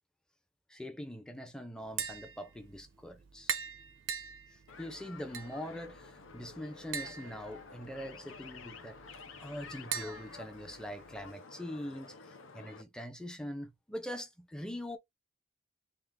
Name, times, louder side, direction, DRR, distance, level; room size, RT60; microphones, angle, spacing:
voice 1, 0.7-3.5 4.8-9.0 9.4-12.1 12.5-15.0, equal, 5° left, 0.6 m, -43 dB
Tap, 1.8-11.3, right 7 dB, 85° right, 0.7 m, -43 dB
sound 1, 4.7-12.8, left 4 dB, 85° left, 0.7 m, -51 dB
3.8 x 2.4 x 3.5 m
head